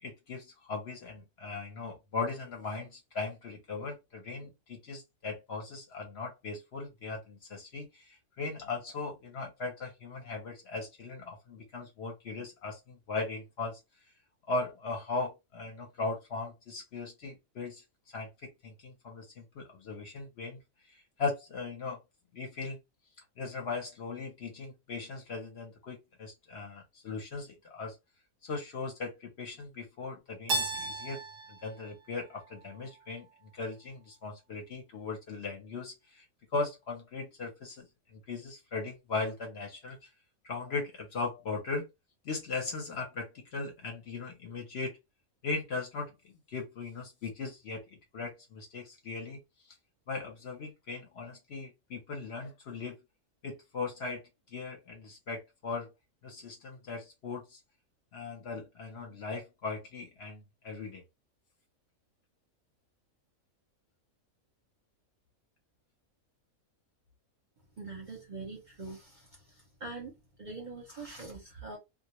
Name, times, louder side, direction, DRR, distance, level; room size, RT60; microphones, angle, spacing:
voice 1, 0.0-13.8 14.5-17.8 18.1-18.3 18.6-20.6 20.9-22.0 22.3-22.8 23.4-28.0 28.4-31.2 31.5-33.3 33.5-36.2 36.5-40.1 40.4-41.9 42.2-45.0 45.4-49.7 50.1-53.0 53.4-55.9 56.2-57.6 58.1-61.0, left 3 dB, 60° left, 0.8 m, -38 dB
Keyboard (musical), 30.5-33.3, right 2 dB, 85° right, 1.1 m, -36 dB
voice 2, 67.8-71.8, right 3 dB, 45° right, 0.7 m, -44 dB
2.3 x 2.0 x 2.8 m
omnidirectional pair, 1.4 m